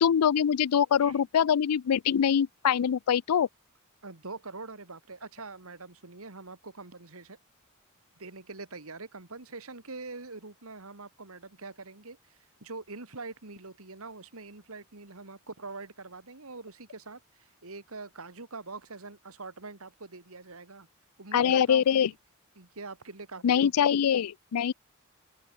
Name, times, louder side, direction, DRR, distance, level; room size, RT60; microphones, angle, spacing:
voice 1, 0.0-3.5 21.3-22.1 23.4-24.7, left 8 dB, 85° left, 0.4 m, -24 dB
voice 2, 4.0-7.4 8.2-20.9 21.2-22.1 22.6-23.9, right 3 dB, 70° right, 2.3 m, -44 dB
open air
head